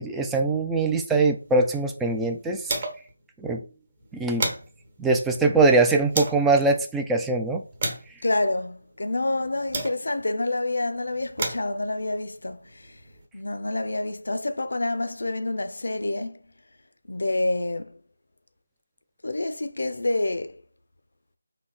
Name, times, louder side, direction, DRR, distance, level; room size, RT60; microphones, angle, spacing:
voice 1, 0.0-2.8 3.4-3.6 4.1-4.5 5.0-7.6, right 3 dB, 5° right, 0.3 m, -22 dB
sound 1, 1.4-3.2 3.5-3.6 4.0-6.5 7.1-10.3 11.0-13.2, right 2 dB, 35° right, 1.1 m, -35 dB
voice 2, 8.2-13.0 13.3-16.4 17.1-18.0 19.2-20.6, left 2 dB, 70° left, 0.5 m, -28 dB
3.9 x 2.8 x 4.7 m
figure-of-eight pair, 170°, 0 cm